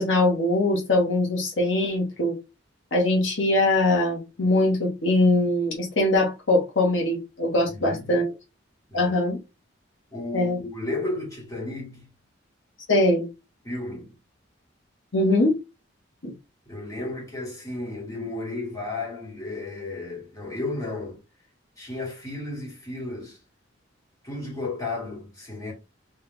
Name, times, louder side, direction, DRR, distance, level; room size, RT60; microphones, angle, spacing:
voice 1, 0.0-2.4 2.9-8.3 8.9-9.4 10.3-10.6 12.9-13.3 15.1-15.5 16.2-16.3, left 1 dB, 80° left, 1.4 m, -22 dB
voice 2, 7.7-8.1 8.9-9.1 10.1-12.1 13.6-14.1 16.7-21.2 21.8-23.4 24.2-25.7, left 2 dB, 20° left, 2.1 m, -33 dB
3.3 x 3.3 x 3.3 m
head